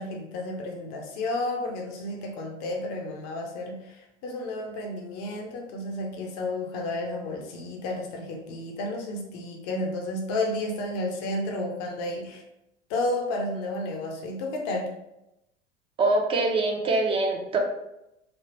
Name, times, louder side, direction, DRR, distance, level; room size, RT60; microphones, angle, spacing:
voice 1, 0.0-12.4 12.9-14.9, left 2 dB, 40° left, 1 dB, 0.7 m, -32 dB
voice 2, 16.0-17.6, right 2 dB, 15° right, 2 dB, 0.5 m, -24 dB
3.4 x 2.3 x 2.8 m, 0.87 s
figure-of-eight pair, 75°, 36 cm